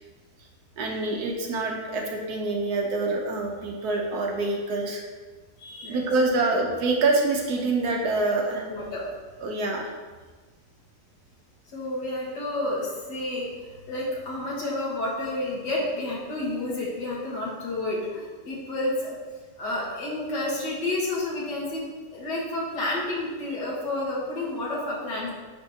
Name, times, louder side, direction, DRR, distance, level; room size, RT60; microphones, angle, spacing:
voice 1, 0.8-5.0 5.9-8.6 9.4-9.9, right 3 dB, 65° right, 1 dB, 1.2 m, -26 dB
voice 2, 5.6-6.0 8.7-9.0 11.7-19.1 19.6-21.8 22.1-25.3, left 2 dB, 75° left, -4 dB, 2.0 m, -30 dB
9.9 x 3.5 x 2.8 m, 1.4 s
omnidirectional pair, 1.9 m